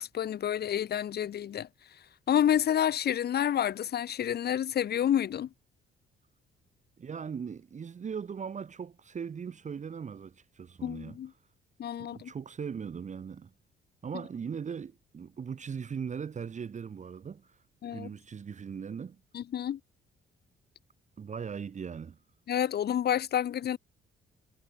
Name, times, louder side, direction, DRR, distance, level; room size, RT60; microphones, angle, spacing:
voice 1, 0.0-1.7 2.3-5.5 10.8-11.3 11.8-12.3 17.8-18.1 19.3-19.8 22.5-23.8, left 10 dB, 55° left, 0.8 m, -29 dB
voice 2, 7.0-11.2 12.0-13.5 14.0-17.6 17.9-19.2 21.2-22.2, right 6 dB, 35° right, 1.0 m, -39 dB
cardioid pair, 90°, 20 cm